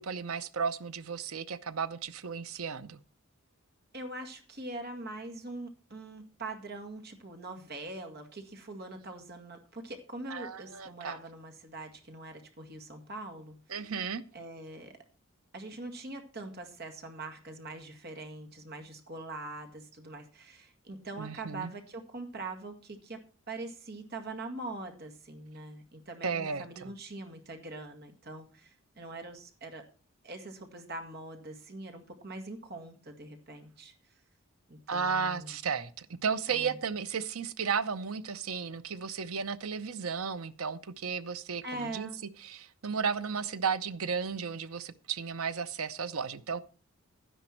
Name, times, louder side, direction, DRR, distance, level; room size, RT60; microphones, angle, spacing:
voice 1, 0.0-3.0 10.3-11.2 13.7-14.2 21.2-21.7 26.2-26.9 34.9-42.1 42.4-46.6, right 6 dB, 85° right, 0.7 m, -34 dB
voice 2, 3.9-13.9 14.3-15.0 15.5-23.2 23.5-29.8 30.2-33.9 34.7-35.6 36.5-36.8 41.6-42.2, right 2 dB, 50° right, 2.0 m, -43 dB
11.5 x 10.5 x 4.4 m
head